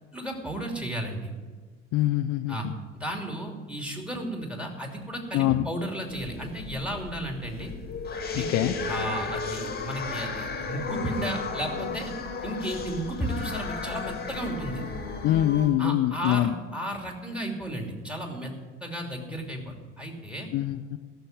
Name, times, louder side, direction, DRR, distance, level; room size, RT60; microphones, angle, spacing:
voice 1, 0.1-1.3 2.5-2.7 2.9-7.7 8.3-12.1 12.4-14.8 15.8-18.5 18.8-20.5, right 1 dB, 5° right, 2 dB, 2.8 m, -33 dB
voice 2, 1.9-2.7 5.3-5.7 8.5-8.8 15.2-16.5 20.5-21.0, left 13 dB, 45° left, 6 dB, 0.7 m, -24 dB
sound 1, 6.1-15.7, left 4 dB, 25° left, 2.0 m, -34 dB
14.0 x 6.9 x 9.5 m, 1.5 s
figure-of-eight pair, 65°, 36 cm